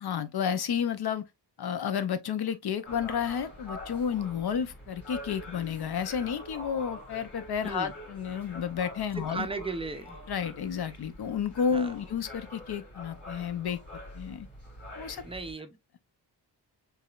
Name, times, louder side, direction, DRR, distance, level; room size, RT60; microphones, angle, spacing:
voice 1, 0.0-1.2 1.6-9.5 10.3-13.8 14.1-14.5 15.0-15.2, left 7 dB, 65° left, 0.6 m, -31 dB
sound 1, 2.8-15.5, left 1 dB, 25° left, 2.0 m, -45 dB
voice 2, 7.6-7.9 9.1-10.2 11.7-11.9 15.2-15.8, right 3 dB, 15° right, 0.4 m, -36 dB
4.8 x 3.2 x 2.3 m
wide cardioid pair, 130°, 42 cm